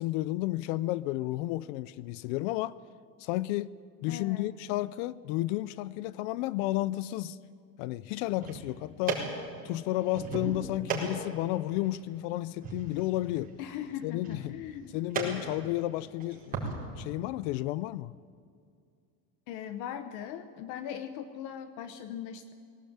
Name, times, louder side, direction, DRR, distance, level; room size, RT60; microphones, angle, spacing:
voice 1, 0.0-2.8 3.2-3.7 4.0-7.4 7.8-9.2 9.6-13.5 14.0-14.6 14.9-16.7 17.0-18.1, left 16 dB, 70° left, 0.6 m, -32 dB
voice 2, 4.1-4.5 13.6-15.0 19.5-22.5, left 9 dB, 55° left, 1.0 m, -39 dB
sound 1, 8.2-16.7, right 5 dB, 20° right, 4.6 m, -38 dB
21.5 x 17.5 x 8.7 m
cardioid pair, 175°, 38 cm